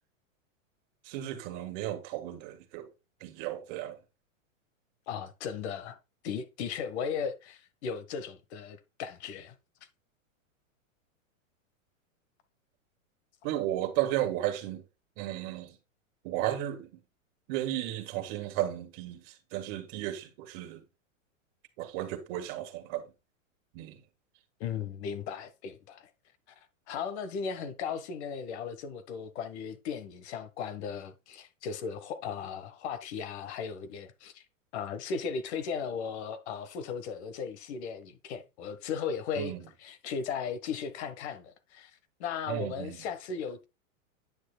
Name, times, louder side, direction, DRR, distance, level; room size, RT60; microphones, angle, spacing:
voice 1, 1.0-2.9 3.2-4.0 13.4-14.8 15.2-15.8 16.2-17.0 17.5-20.8 21.8-23.1 23.7-24.0 39.4-39.6 42.5-43.0, right 13 dB, 45° right, 1.7 m, -34 dB
voice 2, 5.1-6.0 6.2-9.5 24.6-26.1 26.9-34.4 34.7-41.9 42.2-43.7, left 6 dB, 55° left, 1.5 m, -36 dB
9.6 x 6.3 x 2.3 m
hypercardioid pair, 135°, 40 cm